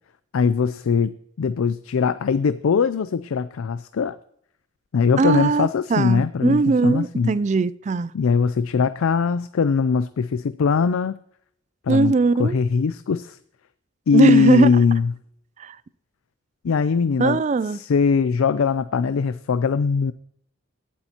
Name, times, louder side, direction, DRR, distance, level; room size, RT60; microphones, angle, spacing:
voice 1, 0.3-4.2 4.9-7.3 8.1-11.2 11.9-12.1 12.4-13.4 14.1-15.1 16.6-17.4 17.7-20.1, left 5 dB, 90° left, 14 dB, 0.4 m, -21 dB
voice 2, 5.2-8.1 11.9-12.6 14.1-14.7 15.6-15.8 17.2-17.8, right 4 dB, 35° right, 19 dB, 0.3 m, -20 dB
19.0 x 8.5 x 2.9 m, 0.70 s
head